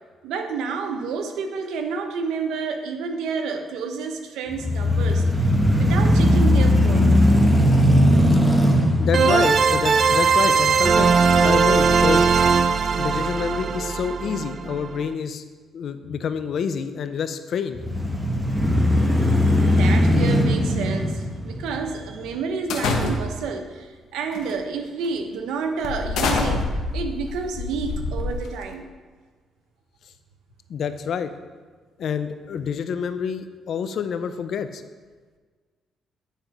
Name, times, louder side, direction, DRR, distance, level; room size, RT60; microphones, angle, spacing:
voice 1, 0.2-7.1 18.9-26.7 26.9-28.9, right 5 dB, 90° right, 6 dB, 0.8 m, -30 dB
sound 1, 4.5-12.6 13.1-13.2 17.7-22.2, left 1 dB, 5° right, 1.1 m, -19 dB
sound 2, 6.3-6.4 9.1-15.0, right 5 dB, 45° right, 0.5 m, -19 dB
voice 2, 9.0-12.3 12.9-15.4 15.7-17.8 30.7-31.3 32.0-34.8, left 7 dB, 65° left, 10 dB, 0.5 m, -27 dB
sound 3, 22.7-23.5 24.3-24.6 25.0-25.2 25.8-28.7, left 3 dB, 80° left, 1.0 m, -26 dB
9.2 x 4.3 x 5.2 m, 1.4 s
cardioid pair, 90°, 0 cm